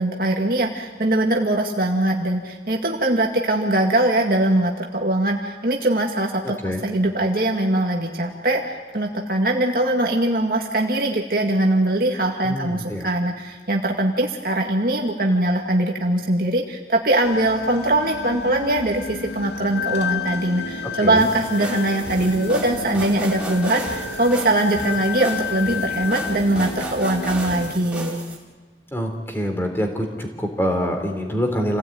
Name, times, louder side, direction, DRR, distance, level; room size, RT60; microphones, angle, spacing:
voice 1, 0.0-28.2, right 1 dB, 50° right, 1 dB, 1.9 m, -21 dB
voice 2, 12.4-13.1 20.8-21.2 28.9-31.8, equal, 15° left, 4 dB, 3.5 m, -25 dB
sound 1, 17.2-27.7, left 5 dB, 70° left, 2.5 m, -31 dB
sound 2, 21.2-28.4, right 1 dB, 5° right, 4.1 m, -34 dB
28.5 x 17.0 x 9.4 m, 1.4 s
head